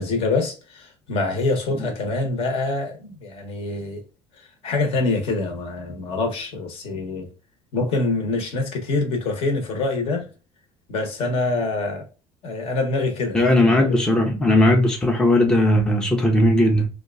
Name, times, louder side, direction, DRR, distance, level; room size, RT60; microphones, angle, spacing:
voice 1, 0.0-4.0 4.6-7.3 7.7-10.3 10.9-12.0 12.4-14.0, left 3 dB, 55° left, 1.0 m, -25 dB
voice 2, 13.3-16.9, left 1 dB, 5° left, 0.5 m, -17 dB
2.8 x 2.3 x 2.3 m
cardioid pair, 135°, 12 cm